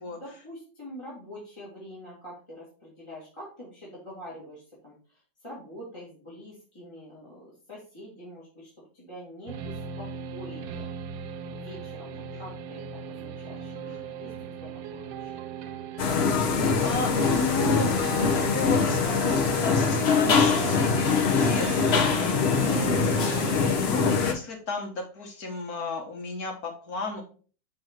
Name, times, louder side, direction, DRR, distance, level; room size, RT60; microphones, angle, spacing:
voice 1, 0.1-10.9 11.5-15.5, equal, 15° left, -7 dB, 2.2 m, -45 dB
sound 1, 9.5-23.8, right 7 dB, 80° right, 1.4 m, -37 dB
sound 2, 16.0-24.3, left 5 dB, 85° left, 0.5 m, -23 dB
voice 2, 16.8-18.1 18.3-27.2, left 4 dB, 50° left, 2 dB, 1.6 m, -33 dB
6.2 x 3.9 x 4.4 m, 0.39 s
omnidirectional pair, 2.2 m